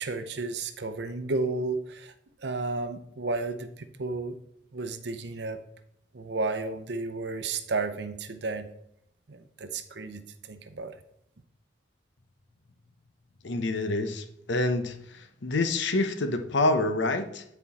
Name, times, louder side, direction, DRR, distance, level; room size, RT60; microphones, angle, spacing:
voice 1, 0.0-2.1 2.4-4.3 4.7-5.6 6.1-8.7 9.3-11.0, right 3 dB, 65° right, 0.7 m, -32 dB
voice 2, 13.4-17.4, left 2 dB, 80° left, 0.8 m, -27 dB
9.4 x 4.5 x 4.2 m
head